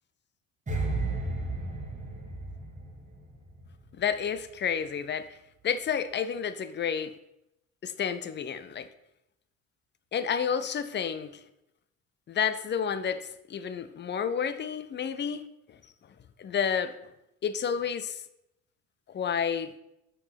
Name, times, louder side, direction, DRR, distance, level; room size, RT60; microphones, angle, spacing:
sound 1, 0.7-3.9 4.1-4.4, right 2 dB, 15° right, 1.6 m, -33 dB
voice 1, 4.0-5.3 5.6-7.1 7.8-8.9 10.1-11.3 12.3-15.4 16.4-16.9 17.4-18.2 19.1-19.8, left 7 dB, 25° left, 12 dB, 0.6 m, -30 dB
6.0 x 5.4 x 5.7 m, 0.85 s
figure-of-eight pair, 50°, 43 cm